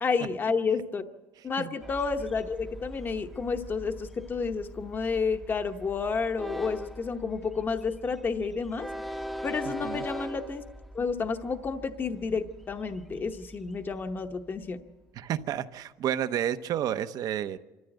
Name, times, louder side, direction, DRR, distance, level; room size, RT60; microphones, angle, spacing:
voice 1, 0.0-1.0 1.4-8.9 9.4-10.6 10.9-14.8, left 5 dB, 25° left, 7 dB, 1.0 m, -30 dB
Train, 1.8-14.8, equal, ahead, 0.8 m, -42 dB
voice 2, 9.7-10.0 15.1-17.6, right 10 dB, 50° right, 12 dB, 0.9 m, -31 dB
26.0 x 14.0 x 7.9 m, 1.2 s
cardioid pair, 130°, 8 cm